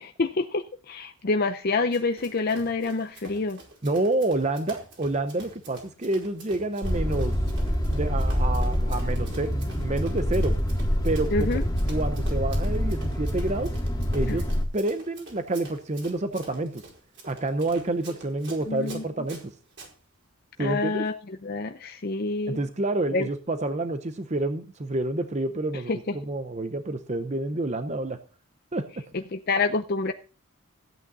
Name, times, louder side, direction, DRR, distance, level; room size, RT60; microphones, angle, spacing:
voice 1, 0.0-3.6 11.3-11.6 14.3-14.4 18.7-19.0 20.6-22.6 23.1-23.3 25.9-26.2 29.3-30.1, left 3 dB, 45° left, 7 dB, 0.6 m, -27 dB
Run, 1.9-19.9, right 2 dB, 55° right, 4.7 m, -47 dB
voice 2, 3.8-7.4 7.9-10.6 11.0-11.6 11.9-13.8 14.1-14.4 14.7-16.8 17.3-19.5 20.6-21.0 22.5-28.2 28.7-29.1, right 2 dB, 30° right, 9 dB, 0.7 m, -28 dB
sound 1, 6.8-14.6, equal, 15° left, 1.8 m, -26 dB
15.0 x 8.7 x 4.0 m, 0.38 s
head